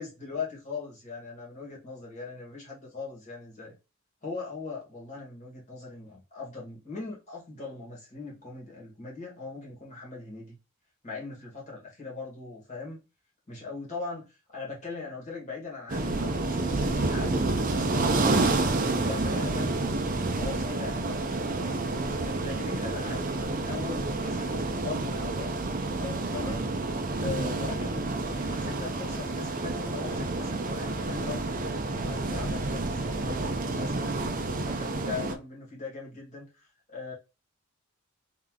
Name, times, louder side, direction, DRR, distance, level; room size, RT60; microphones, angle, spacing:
voice 1, 0.0-3.7 4.2-10.6 11.0-13.0 13.5-19.9 20.3-25.5 26.0-26.7 27.2-31.6 31.9-34.2 34.6-37.1, left 4 dB, 35° left, 2.0 m, -40 dB
sound 1, 15.9-35.4, right 2 dB, 40° right, 0.6 m, -29 dB
3.3 x 3.1 x 3.7 m
head